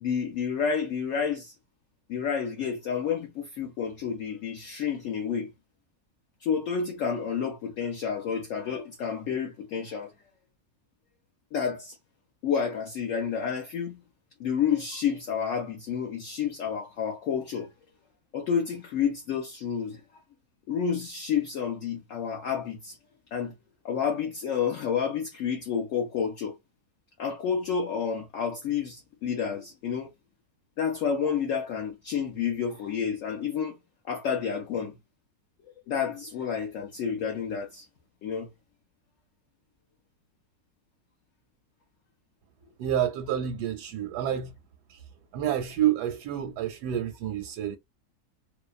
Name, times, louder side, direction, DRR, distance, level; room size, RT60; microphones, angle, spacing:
voice 1, 0.0-1.5 2.1-5.5 6.4-10.1 11.5-12.0 12.4-14.0 14.4-17.7 18.3-20.0 20.7-23.0 23.3-23.5 23.8-26.5 27.2-30.1 30.8-33.7 34.0-34.9 35.9-37.9 38.2-38.5, left 7 dB, 65° left, 0.8 m, -30 dB
voice 2, 42.8-44.5 44.9-45.0 45.3-47.8, right 10 dB, 85° right, 1.1 m, -28 dB
2.7 x 2.1 x 2.3 m
omnidirectional pair, 1.7 m